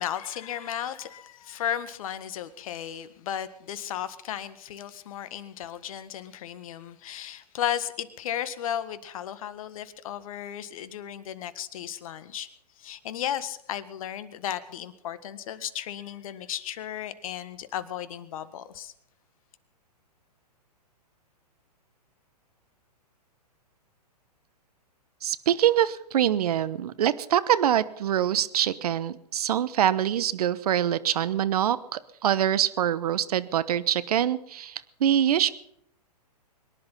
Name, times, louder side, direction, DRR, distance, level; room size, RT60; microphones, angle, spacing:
voice 1, 0.0-12.5 12.8-18.9, left 10 dB, 60° left, 1.7 m, -34 dB
voice 2, 25.2-35.5, right 10 dB, 65° right, 1.0 m, -24 dB
23.5 x 11.0 x 5.6 m
hypercardioid pair, 120°, 21 cm